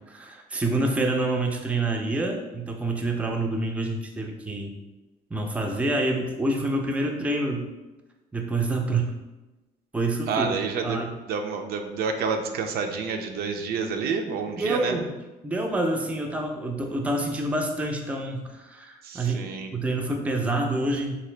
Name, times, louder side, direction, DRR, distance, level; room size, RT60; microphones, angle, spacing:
voice 1, 0.1-4.7 5.3-7.7 8.3-9.1 9.9-10.6 10.8-11.1 14.6-15.1 15.4-21.2, right 2 dB, 10° right, 2 dB, 0.4 m, -27 dB
voice 2, 10.3-11.0 11.3-15.0 19.0-19.7, right 5 dB, 65° right, 5 dB, 0.5 m, -29 dB
3.8 x 2.6 x 3.2 m, 1.1 s
cardioid pair, 110°, 17 cm